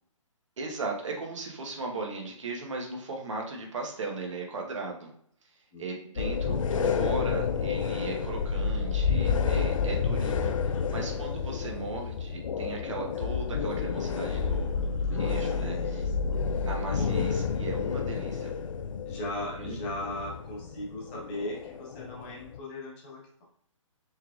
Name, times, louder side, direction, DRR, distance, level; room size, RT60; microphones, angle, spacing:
voice 1, 0.6-5.1 5.8-14.9 15.2-16.1 16.7-18.5 19.6-19.8, right 3 dB, 65° right, 1 dB, 1.2 m, -37 dB
sound 1, 6.2-22.6, left 5 dB, 75° left, 0.4 m, -30 dB
voice 2, 10.7-11.3 14.6-16.1 16.6-17.2 19.1-23.4, left 1 dB, 20° left, -4 dB, 1.0 m, -39 dB
4.6 x 3.3 x 2.4 m, 0.65 s
hypercardioid pair, 170°, 17 cm